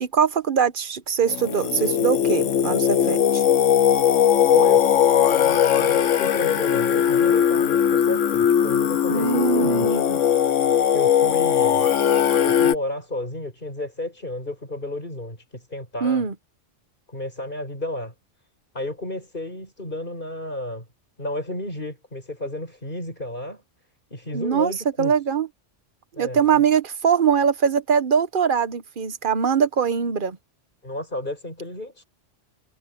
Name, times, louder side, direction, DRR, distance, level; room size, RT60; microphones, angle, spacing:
voice 1, 0.0-3.4 9.1-10.2 16.0-16.3 24.3-24.7 25.0-25.5 26.2-30.4, right 7 dB, 45° right, 1.1 m, -22 dB
Singing, 1.3-12.7, left 9 dB, 80° left, 1.2 m, -19 dB
voice 2, 4.5-4.8 5.3-10.0 10.9-11.9 12.4-16.3 17.1-18.1 18.7-20.9 21.2-23.6 24.1-25.1 26.1-26.7 30.8-32.0, left 1 dB, 45° left, 7.2 m, -32 dB
omnidirectional pair, 1.3 m